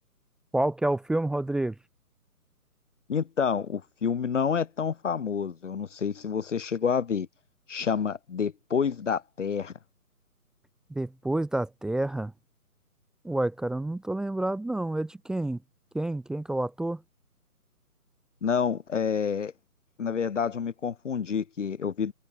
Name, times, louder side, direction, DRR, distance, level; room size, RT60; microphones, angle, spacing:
voice 1, 0.5-1.7 10.9-12.3 13.2-15.6 15.9-17.0, right 1 dB, ahead, 1.5 m, -29 dB
voice 2, 3.1-7.3 7.7-9.7 18.4-19.5 20.0-22.1, left 6 dB, 50° left, 1.9 m, -28 dB
figure-of-eight pair, 145°, 45 cm